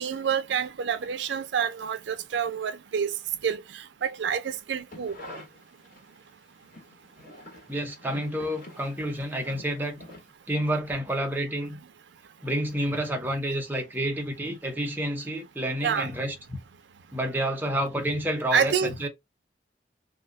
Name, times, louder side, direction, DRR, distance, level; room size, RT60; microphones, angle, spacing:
voice 1, 0.0-3.1 3.4-5.2 15.8-16.1 18.5-18.9, right 7 dB, 80° right, 0.4 m, -28 dB
sound 1, 4.7-6.2 6.6-10.7 10.9-11.0, left 1 dB, 50° left, 1.5 m, -46 dB
voice 2, 7.7-10.0 10.5-11.8 12.4-16.6 17.1-19.1, right 1 dB, 10° right, 0.7 m, -29 dB
2.7 x 2.2 x 3.7 m
head